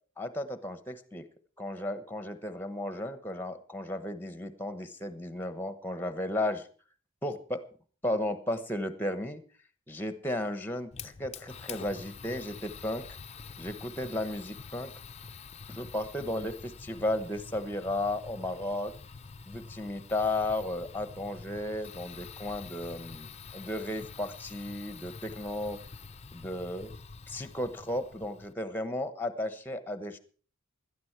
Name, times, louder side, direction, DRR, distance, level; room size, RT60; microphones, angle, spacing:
voice 1, 0.2-1.3 1.6-6.7 7.2-7.6 8.0-9.4 9.9-13.0 13.6-14.9 15.7-18.9 19.5-25.8 26.3-26.9 27.3-30.2, left 1 dB, 10° left, 11 dB, 1.1 m, -34 dB
Fire, 10.9-28.5, left 5 dB, 30° left, 0.6 m, -47 dB
16.5 x 12.5 x 4.6 m, 0.41 s
head